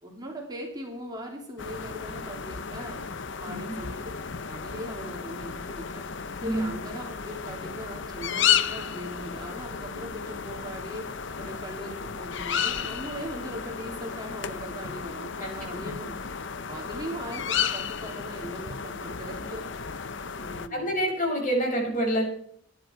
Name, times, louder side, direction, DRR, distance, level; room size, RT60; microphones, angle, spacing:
voice 1, 0.0-4.0 4.5-16.2 16.7-20.0 20.3-20.9, equal, 20° right, 0 dB, 3.2 m, -40 dB
sound 1, 1.6-20.7, left 7 dB, 65° left, 0.8 m, -33 dB
voice 2, 3.5-3.8 6.4-6.8 15.4-15.9 20.7-22.2, right 1 dB, 40° left, 0 dB, 6.0 m, -28 dB
22.5 x 10.5 x 4.6 m, 0.65 s
head